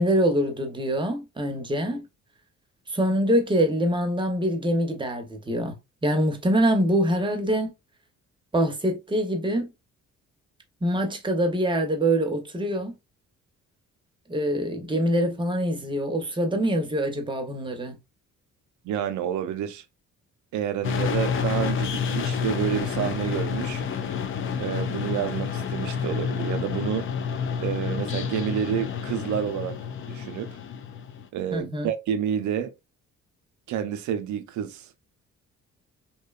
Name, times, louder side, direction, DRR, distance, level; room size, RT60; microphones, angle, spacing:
voice 1, 0.0-2.0 2.9-5.7 6.0-7.7 8.5-9.7 10.8-12.9 14.3-18.0 31.5-31.9, right 1 dB, 15° right, 0.7 m, -24 dB
voice 2, 18.8-19.8 20.5-23.8 24.6-27.1 27.6-29.8 30.1-30.6 31.3-32.7 33.7-34.9, right 9 dB, 75° right, 0.5 m, -29 dB
sound 1, 20.8-31.3, left 6 dB, 45° left, 0.4 m, -29 dB
2.7 x 2.1 x 2.3 m
cardioid pair, 90°, 30 cm